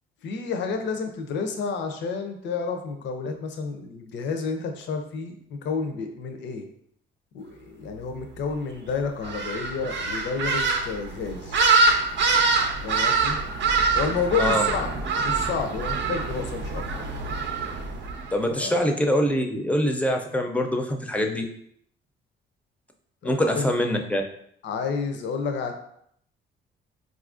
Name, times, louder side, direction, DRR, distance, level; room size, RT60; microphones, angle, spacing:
voice 1, 0.2-6.6 7.3-11.7 12.8-13.4 13.9-14.9 15.2-17.1 18.5-18.8 23.2-23.7 24.6-25.8, left 5 dB, 65° left, 4 dB, 0.5 m, -30 dB
sound 1, 9.2-18.3, right 4 dB, 65° right, 0.6 m, -24 dB
voice 2, 18.3-21.4 23.2-24.2, equal, 5° left, 3 dB, 0.4 m, -24 dB
4.0 x 2.4 x 2.4 m, 0.69 s
cardioid pair, 90°, 20 cm